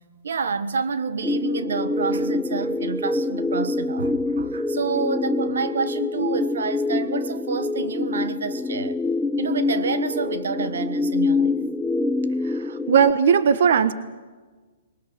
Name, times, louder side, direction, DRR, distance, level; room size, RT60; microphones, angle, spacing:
voice 1, 0.2-9.0 9.4-11.6 12.7-12.8, right 5 dB, 85° right, 1.4 m, -28 dB
sound 1, 1.2-13.1, left 3 dB, ahead, 0.6 m, -25 dB
voice 2, 12.4-13.9, right 7 dB, 65° right, 1.3 m, -18 dB
21.5 x 19.0 x 8.0 m
hypercardioid pair, 150°, 0 cm